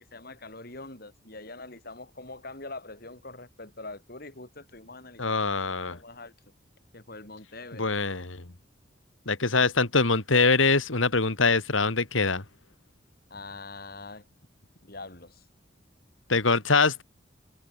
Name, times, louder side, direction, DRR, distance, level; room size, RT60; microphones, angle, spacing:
voice 1, 0.0-5.4 5.9-6.3 6.9-7.9 13.3-14.3 14.8-15.5, left 2 dB, 50° left, 4.2 m, -43 dB
voice 2, 5.2-6.0 7.8-8.4 9.3-12.4 16.3-17.0, left 4 dB, 85° left, 2.5 m, -23 dB
head